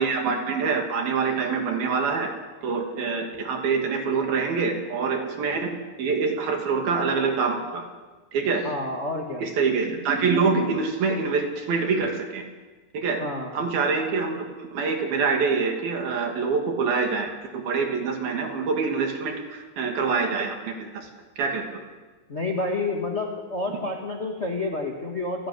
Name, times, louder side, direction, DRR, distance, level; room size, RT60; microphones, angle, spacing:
voice 1, 0.0-2.3 2.6-5.7 6.0-7.8 8.3-8.7 9.4-12.4 12.9-13.2 13.5-17.3 17.5-21.1 21.4-21.8 23.7-23.8, right 5 dB, 60° right, 3 dB, 4.2 m, -25 dB
voice 2, 8.6-9.4 13.2-13.5 22.3-25.5, left 2 dB, 40° left, 1 dB, 0.9 m, -29 dB
28.0 x 12.5 x 9.7 m, 1.3 s
omnidirectional pair, 5.1 m